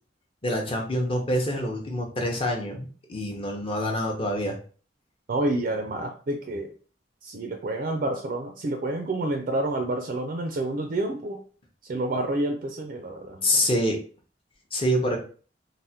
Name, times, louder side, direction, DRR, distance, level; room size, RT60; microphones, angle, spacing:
voice 1, 0.4-4.6 13.4-14.0 14.7-15.2, equal, 30° left, 2 dB, 0.6 m, -26 dB
voice 2, 5.3-6.7 7.2-11.4 11.8-13.5, right 2 dB, 45° right, 4 dB, 0.4 m, -29 dB
3.3 x 2.1 x 2.7 m, 0.39 s
head